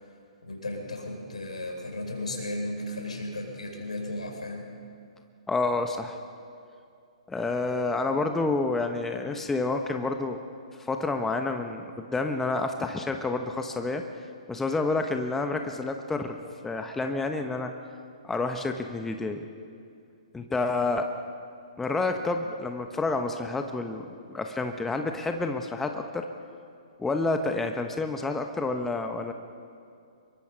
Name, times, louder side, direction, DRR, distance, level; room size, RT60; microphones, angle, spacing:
voice 1, 0.4-4.7, left 1 dB, 80° left, 2 dB, 5.5 m, -35 dB
voice 2, 5.5-6.2 7.3-10.4 10.7-14.0 14.5-16.4 16.6-17.7 18.2-19.5 20.3-21.1 21.8-26.3 27.0-29.3, left 3 dB, 10° left, 5 dB, 1.1 m, -29 dB
26.0 x 22.5 x 5.5 m, 2.4 s
figure-of-eight pair, 125°, 4 cm